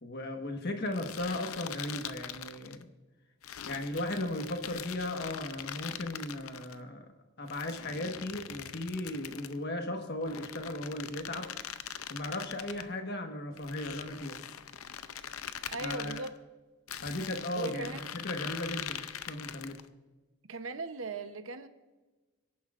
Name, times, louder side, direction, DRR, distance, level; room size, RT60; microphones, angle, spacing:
voice 1, 0.0-2.9 3.7-7.1 7.4-11.5 12.1-14.4 15.8-16.2 17.0-17.9 18.2-19.8, left 1 dB, 50° left, 5 dB, 1.4 m, -36 dB
sound 1, 0.9-2.8 3.4-6.7 7.5-9.6 10.2-12.9 13.6-16.3 16.9-19.9, left 9 dB, 75° left, 0.6 m, -42 dB
voice 2, 15.7-16.3 17.5-18.1 20.5-21.7, right 3 dB, 65° right, 10 dB, 0.9 m, -38 dB
23.5 x 10.5 x 2.5 m, 1.2 s
head